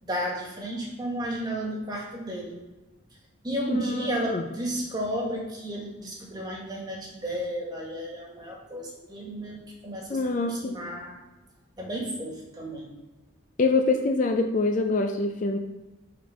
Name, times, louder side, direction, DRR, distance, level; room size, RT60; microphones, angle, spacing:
voice 1, 0.0-2.6 3.4-11.1 11.8-12.9, equal, 20° right, -2 dB, 1.5 m, -33 dB
voice 2, 3.7-4.5 10.1-10.8 13.6-15.6, left 3 dB, 40° left, 4 dB, 0.4 m, -25 dB
5.0 x 4.4 x 5.7 m, 1.1 s
head